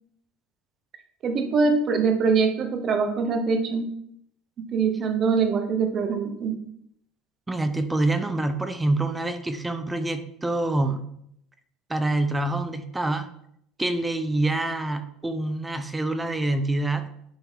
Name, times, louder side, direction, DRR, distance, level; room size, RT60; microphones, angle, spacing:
voice 1, 1.2-3.9 4.7-6.6, right 5 dB, 35° right, 6 dB, 0.9 m, -23 dB
voice 2, 7.5-11.1 11.9-13.3 13.8-17.0, right 2 dB, 10° right, 9 dB, 0.5 m, -26 dB
10.0 x 3.8 x 4.7 m, 0.72 s
cardioid pair, 145°, 0 cm